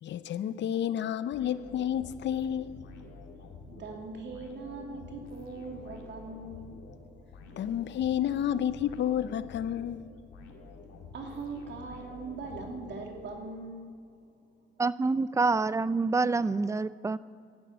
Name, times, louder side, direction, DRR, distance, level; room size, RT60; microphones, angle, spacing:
voice 1, 0.0-2.7 7.6-10.1, left 10 dB, 65° left, 0.7 m, -30 dB
sound 1, 1.3-13.5, left 3 dB, 85° left, 2.1 m, -49 dB
voice 2, 3.7-6.8 11.1-13.9, right 3 dB, 65° right, 2.6 m, -41 dB
voice 3, 14.8-17.2, right 3 dB, 15° right, 0.4 m, -27 dB
11.5 x 11.0 x 8.6 m
cardioid pair, 90°, 20 cm